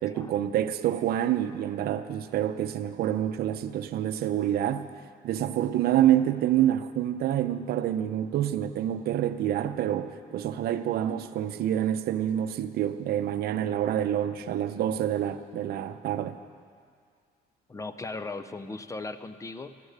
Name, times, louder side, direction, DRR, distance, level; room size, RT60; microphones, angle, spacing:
voice 1, 0.0-4.9 5.2-16.4, right 11 dB, 65° right, 10 dB, 0.6 m, -27 dB
voice 2, 17.7-19.8, left 3 dB, 20° left, 12 dB, 0.5 m, -38 dB
13.5 x 9.7 x 6.6 m, 2.1 s
cardioid pair, 110°, 17 cm